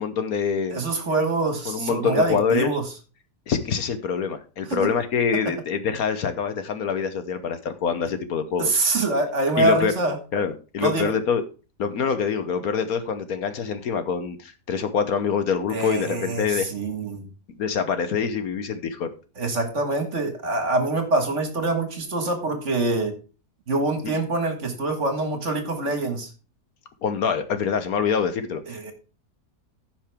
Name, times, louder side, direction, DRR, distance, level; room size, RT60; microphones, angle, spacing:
voice 1, 0.0-0.8 1.7-2.7 3.5-8.7 9.6-9.9 10.3-11.4 11.8-16.7 17.6-19.1 27.0-28.9, left 6 dB, 65° left, 10 dB, 1.3 m, -25 dB
voice 2, 0.7-2.8 4.7-4.9 8.6-10.2 10.8-11.1 15.7-17.2 19.4-23.1 23.7-26.3 28.7-28.9, right 2 dB, 45° right, 5 dB, 1.9 m, -25 dB
14.5 x 5.8 x 3.5 m, 0.35 s
omnidirectional pair, 1.8 m